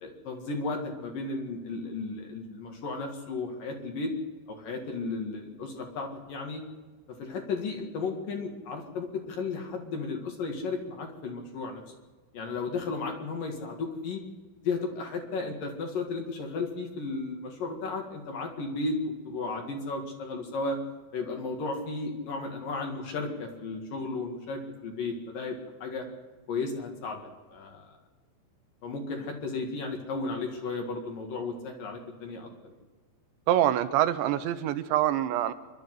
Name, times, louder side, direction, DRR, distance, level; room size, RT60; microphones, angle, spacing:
voice 1, 0.0-4.1 4.5-6.6 7.1-11.8 12.3-14.2 14.6-20.8 21.1-26.1 26.5-27.2 27.5-27.8 28.8-32.7, left 3 dB, 55° left, 3 dB, 3.1 m, -34 dB
voice 2, 33.5-35.5, right 12 dB, 80° right, 11 dB, 3.0 m, -25 dB
27.0 x 12.0 x 7.8 m, 1.3 s
omnidirectional pair, 5.3 m